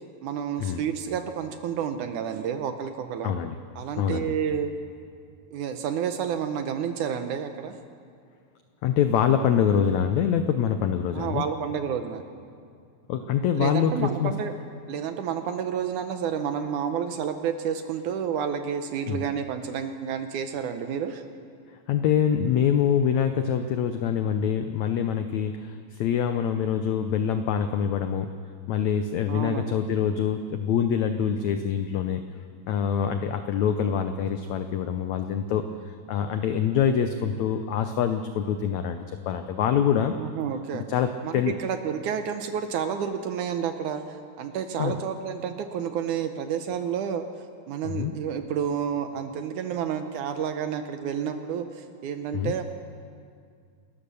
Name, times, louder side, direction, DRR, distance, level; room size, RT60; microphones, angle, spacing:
voice 1, 0.2-3.3 3.8-4.7 5.5-7.8 11.1-12.2 13.6-14.5 14.9-21.2 29.3-29.8 40.2-40.8 41.2-47.3 47.7-52.6, right 8 dB, 70° right, 8 dB, 2.0 m, -30 dB
voice 2, 3.2-3.6 4.0-4.4 8.8-11.4 13.1-14.3 19.1-19.2 21.7-28.3 28.7-32.2 32.7-40.1 40.7-41.6 44.8-44.9 47.8-48.1 52.3-52.5, left 8 dB, 90° left, 8 dB, 1.6 m, -25 dB
28.5 x 13.0 x 6.9 m, 2.2 s
omnidirectional pair, 4.2 m